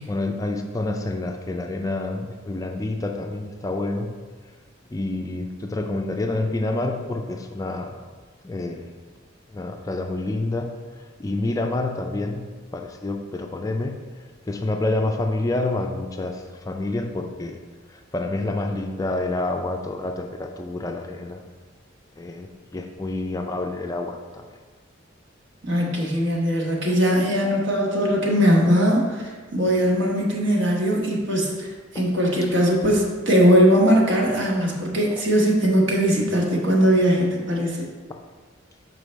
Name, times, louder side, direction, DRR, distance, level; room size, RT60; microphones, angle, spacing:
voice 1, 0.0-4.1 4.9-8.0 8.4-8.9 9.5-12.4 12.7-14.0 14.5-17.6 17.9-21.4 22.2-24.4 31.9-32.1 38.1-38.2, left 2 dB, 15° left, 4 dB, 0.3 m, -28 dB
voice 2, 25.6-37.9, equal, 70° right, -2 dB, 1.2 m, -20 dB
6.2 x 4.6 x 3.3 m, 1.4 s
head